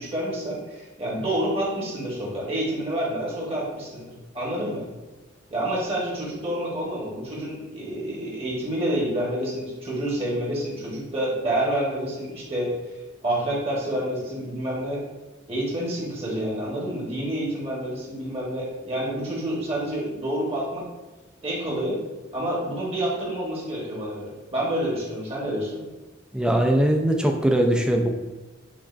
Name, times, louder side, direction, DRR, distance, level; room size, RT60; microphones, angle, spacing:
voice 1, 0.0-4.8 5.5-12.7 13.2-15.0 15.5-20.8 21.4-22.0 22.3-25.8, right 1 dB, 30° right, -5 dB, 1.0 m, -28 dB
voice 2, 26.3-28.1, right 1 dB, 5° right, 2 dB, 0.3 m, -21 dB
6.0 x 2.4 x 2.4 m, 1.1 s
head